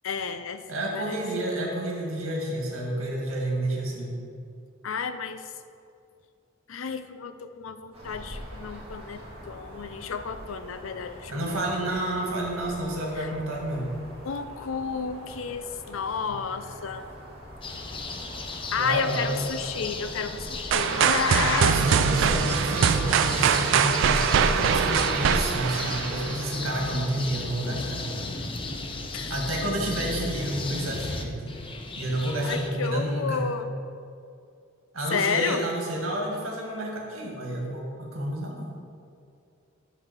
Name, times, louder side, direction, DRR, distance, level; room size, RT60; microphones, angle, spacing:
voice 1, 0.0-0.6 0.9-1.2 4.8-5.5 6.7-11.3 11.8-12.6 13.2-13.3 14.2-17.0 18.7-21.8 29.1-29.4 32.4-33.7 35.1-35.7, left 6 dB, 75° left, 10 dB, 0.5 m, -31 dB
voice 2, 0.7-4.1 11.3-13.9 18.8-19.4 21.6-28.1 29.3-31.4 32.0-33.4 34.9-38.7, right 1 dB, 85° right, -2 dB, 1.9 m, -30 dB
sound 1, 7.9-26.6, equal, 30° right, 1.9 m, -45 dB
sound 2, 17.6-32.7, left 3 dB, 25° left, 0.6 m, -35 dB
sound 3, 20.7-26.6, right 7 dB, 65° right, 0.4 m, -23 dB
9.9 x 4.1 x 6.0 m, 2.5 s
head